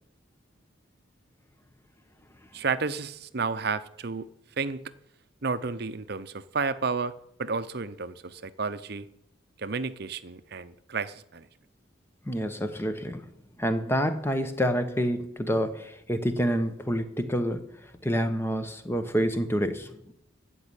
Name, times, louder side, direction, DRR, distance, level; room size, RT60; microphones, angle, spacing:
voice 1, 2.5-4.3 4.6-4.8 5.4-7.1 7.4-9.1 9.6-11.5, right 4 dB, 50° right, 14 dB, 0.7 m, -31 dB
voice 2, 12.3-13.2 13.6-17.7 18.0-19.9, equal, 10° left, 8 dB, 1.0 m, -27 dB
15.0 x 5.5 x 8.9 m, 0.79 s
head